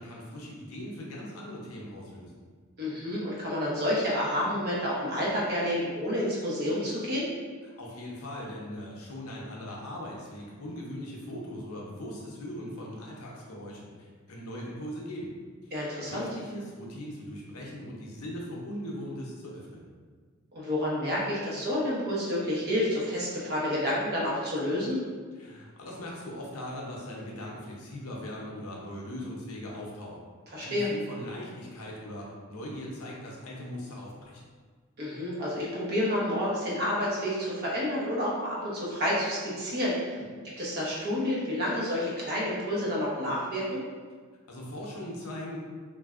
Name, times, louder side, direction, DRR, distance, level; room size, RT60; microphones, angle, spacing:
voice 1, 0.0-2.3 7.8-15.3 15.6-15.7 16.0-19.9 25.4-30.3 30.6-34.4 40.1-40.2 44.5-45.6, left 1 dB, 75° left, -3 dB, 0.7 m, -40 dB
voice 2, 2.8-7.3 15.7-16.3 20.5-25.0 30.5-30.9 35.0-39.9 40.6-43.8, left 1 dB, 50° right, -6 dB, 0.9 m, -29 dB
3.2 x 2.5 x 2.4 m, 1.5 s
head